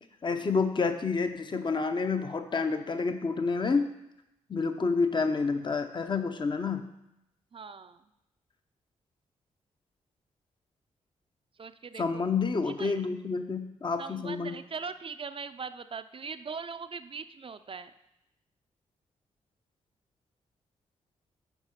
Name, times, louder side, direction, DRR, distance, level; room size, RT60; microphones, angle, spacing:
voice 1, 0.2-3.9 4.5-6.8 12.0-14.6, left 4 dB, 35° left, 8 dB, 0.7 m, -29 dB
voice 2, 7.5-8.0 11.6-12.2 12.7-13.0 14.0-17.9, right 5 dB, 40° right, 10 dB, 0.5 m, -40 dB
8.1 x 4.8 x 5.7 m, 0.87 s
hypercardioid pair, 45°, 14 cm